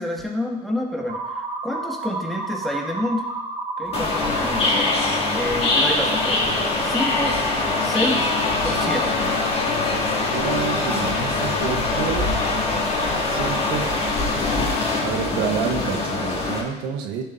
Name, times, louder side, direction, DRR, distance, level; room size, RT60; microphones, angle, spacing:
voice 1, 0.0-3.3 3.8-5.1 5.3-6.5 6.8-7.4 7.8-8.3 8.6-9.2, left 1 dB, ahead, -1 dB, 2.0 m, -28 dB
sound 1, 1.1-6.1, right 2 dB, 40° right, 2.4 m, -32 dB
sound 2, 3.9-16.6, left 2 dB, 35° left, 2.5 m, -23 dB
sound 3, 7.7-14.3, left 8 dB, 85° left, 1.8 m, -35 dB
voice 2, 10.3-12.3 13.3-13.9 15.0-17.2, right 7 dB, 75° right, 4 dB, 1.1 m, -28 dB
13.5 x 7.3 x 2.7 m, 0.98 s
supercardioid pair, 85°, 18 cm